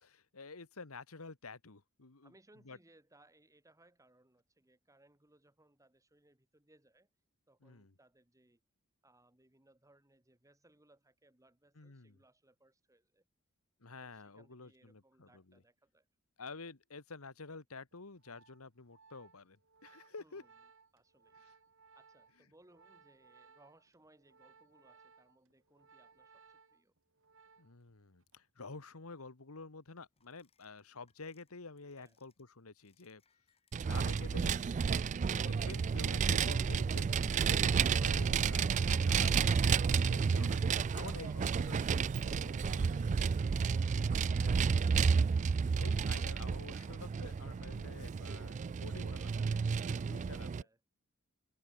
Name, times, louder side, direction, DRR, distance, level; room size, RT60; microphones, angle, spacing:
voice 1, 0.0-2.3 2.6-2.8 7.6-7.9 11.7-12.2 13.8-15.6 16.4-20.4 21.4-21.5 27.6-33.2 33.7-34.7 35.2-39.5 40.0-41.8 42.2-43.1 44.0-44.6 45.8-49.5 49.9-50.7, left 3 dB, 80° left, 1.6 m, -50 dB
voice 2, 2.2-7.1 7.5-8.6 9.0-13.2 14.0-16.1 20.2-20.5 20.9-21.4 21.9-26.9 31.9-32.2 50.5-50.8, right 2 dB, 15° right, 3.1 m, -66 dB
Organ, 17.9-27.9 28.2-28.5, right 5 dB, 65° right, 3.3 m, -64 dB
sound 1, 30.2-30.8 31.1-31.4 32.1-32.4 32.9-41.4, left 1 dB, 30° left, 1.1 m, -55 dB
Vehicle, 33.7-50.6, right 6 dB, 35° right, 0.3 m, -31 dB
head